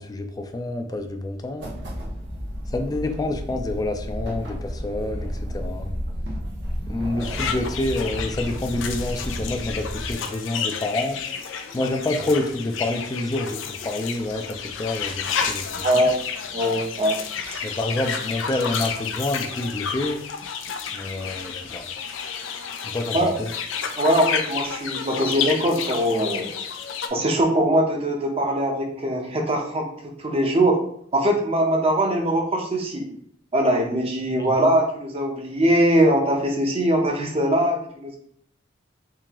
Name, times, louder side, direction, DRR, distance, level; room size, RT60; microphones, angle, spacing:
voice 1, 0.0-1.7 2.7-5.9 6.9-11.2 11.7-16.1 17.6-20.2 20.9-21.8 22.8-23.5 34.3-34.5, left 2 dB, 20° left, 6 dB, 0.4 m, -28 dB
sound 1, 1.6-10.2, equal, 65° right, 0.8 m, -32 dB
sound 2, 7.2-27.1, left 7 dB, 85° left, 0.4 m, -31 dB
voice 2, 15.8-16.1 16.5-17.2 17.5-17.6 23.1-23.3 24.0-26.5 27.1-29.9 30.2-30.8 31.1-33.0 33.5-38.2, right 1 dB, 30° right, 2 dB, 0.7 m, -21 dB
3.7 x 2.8 x 2.9 m, 0.64 s
head